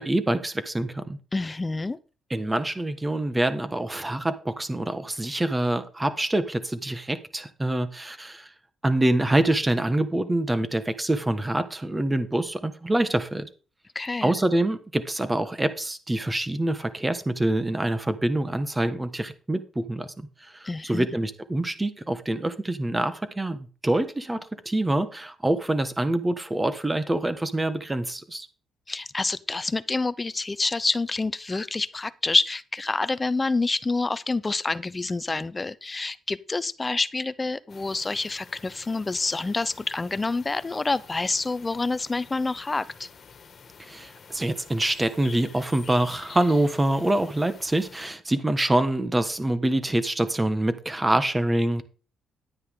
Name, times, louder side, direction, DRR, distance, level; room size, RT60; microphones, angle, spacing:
voice 1, 0.0-1.2 2.3-8.5 8.8-13.5 14.2-28.5 43.8-51.8, right 1 dB, 15° right, 1.4 m, -25 dB
voice 2, 1.3-2.0 13.9-14.3 20.6-21.1 28.9-43.1, left 3 dB, 20° left, 0.6 m, -27 dB
sound 1, 37.7-48.1, left 6 dB, 50° left, 1.9 m, -48 dB
10.5 x 9.5 x 3.7 m
cardioid pair, 90°, 0 cm